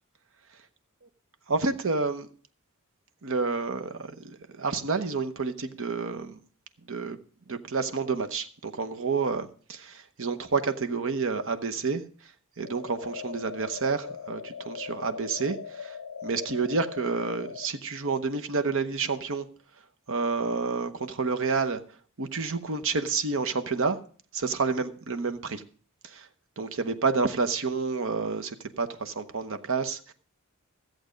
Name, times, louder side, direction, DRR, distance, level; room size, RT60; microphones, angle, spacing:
voice 1, 1.5-2.3 3.2-6.4 6.9-7.2 7.5-12.0 12.6-16.0 16.2-19.5 20.1-21.8 22.2-24.0 24.3-25.6 26.0-26.3 26.6-30.1, right 4 dB, 65° right, 0.9 m, -29 dB
sound 1, 12.6-17.7, left 6 dB, 85° left, 0.4 m, -40 dB
14.0 x 7.8 x 5.1 m
head